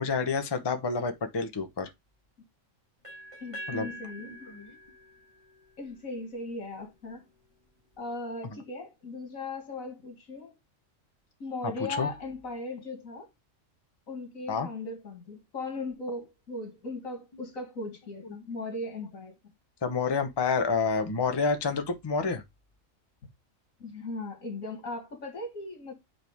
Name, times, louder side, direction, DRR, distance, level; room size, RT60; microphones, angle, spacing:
voice 1, 0.0-1.9 3.7-4.7 11.9-12.1 14.5-14.7 18.2-18.3 19.8-22.4, left 4 dB, 25° left, 0.7 m, -29 dB
sound 1, 3.0-6.9, equal, 20° right, 3.3 m, -46 dB
voice 2, 3.4-4.5 5.8-7.2 8.0-10.5 11.4-13.3 14.1-19.4 23.8-25.9, left 2 dB, 90° left, 2.5 m, -38 dB
6.2 x 5.3 x 3.5 m
omnidirectional pair, 1.4 m